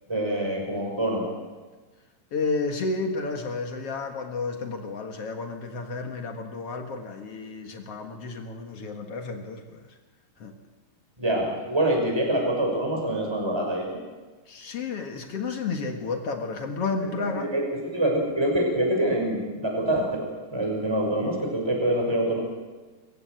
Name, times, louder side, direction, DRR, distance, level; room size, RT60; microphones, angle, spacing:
voice 1, 0.1-1.3 11.2-14.0 17.3-17.6 17.9-20.3 20.5-22.4, right 1 dB, 5° right, 0 dB, 5.5 m, -25 dB
voice 2, 2.3-9.8 10.4-10.6 14.5-17.5, left 4 dB, 65° left, 4 dB, 1.5 m, -31 dB
24.5 x 15.5 x 7.8 m, 1.3 s
omnidirectional pair, 5.1 m